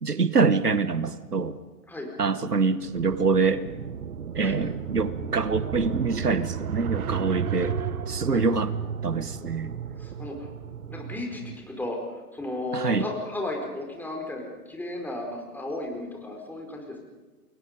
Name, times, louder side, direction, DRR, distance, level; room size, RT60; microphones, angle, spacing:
voice 1, 0.0-1.6 2.2-3.6 4.3-7.8 8.1-8.7 9.0-9.7 12.7-13.1, right 4 dB, 85° right, 15 dB, 1.1 m, -25 dB
sound 1, 2.8-11.6, right 7 dB, 65° right, 1.2 m, -33 dB
voice 2, 10.0-10.5 10.9-12.0 12.3-17.0, left 1 dB, 5° left, 0 dB, 4.6 m, -34 dB
29.5 x 22.0 x 5.2 m, 1.3 s
figure-of-eight pair, 105°, 45 cm